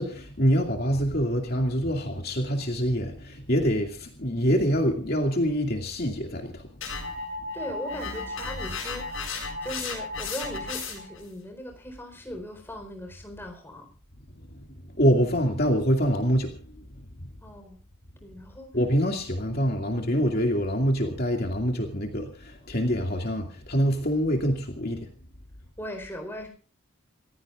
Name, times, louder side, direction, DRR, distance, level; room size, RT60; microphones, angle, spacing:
voice 1, 0.0-6.7 14.5-17.3 18.7-25.1, equal, 50° left, 2 dB, 2.5 m, -25 dB
sound 1, 6.8-11.2, left 3 dB, 70° left, 7.4 m, -34 dB
voice 2, 7.5-13.9 17.4-17.8 18.2-18.8 25.8-26.5, left 1 dB, 10° left, 3 dB, 4.4 m, -39 dB
29.0 x 15.5 x 2.6 m, 0.37 s
head